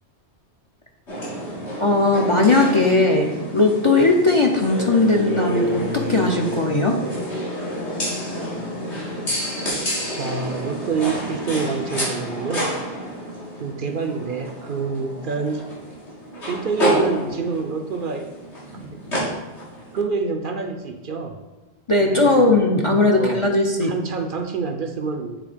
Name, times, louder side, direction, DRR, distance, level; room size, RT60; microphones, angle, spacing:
sound 1, 1.1-20.0, equal, 85° left, 2.6 m, -29 dB
voice 1, 1.8-7.0 21.9-23.9, left 2 dB, 35° left, 2 dB, 0.5 m, -18 dB
voice 2, 10.2-12.7 13.6-15.6 16.5-18.3 18.8-19.0 19.9-21.4 22.0-22.5 23.1-25.4, right 5 dB, 55° right, 6 dB, 0.7 m, -27 dB
7.7 x 3.8 x 5.0 m, 1.2 s
omnidirectional pair, 1.1 m